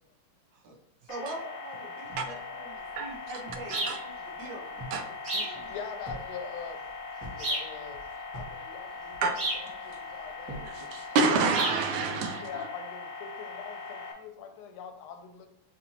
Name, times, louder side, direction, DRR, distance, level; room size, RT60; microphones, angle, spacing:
sound 1, 1.1-14.1, left 4 dB, 65° left, 1.1 m, -41 dB
voice 1, 1.1-5.1 5.4-5.6, right 2 dB, 70° right, 2 dB, 1.3 m, -43 dB
voice 2, 1.8-3.0 3.9-4.0 5.3-6.8 7.3-8.0 8.3-9.4 9.6-10.8 11.9-15.5, left 6 dB, 85° left, 6 dB, 1.5 m, -44 dB
sound 2, 2.1-3.8 4.1-4.2 4.5-5.0 5.4-6.3 6.6-8.6 8.9-9.5 10.0-10.8, right 1 dB, 20° right, 1.2 m, -45 dB
sound 3, 3.7-4.0 5.2-5.6 7.4-7.7 9.4-9.7 11.5-11.8, right 2 dB, 50° right, 0.8 m, -31 dB
voice 3, 10.7-12.7, right 4 dB, 85° right, 6 dB, 1.5 m, -28 dB
5.7 x 2.5 x 2.8 m, 0.79 s
omnidirectional pair, 2.3 m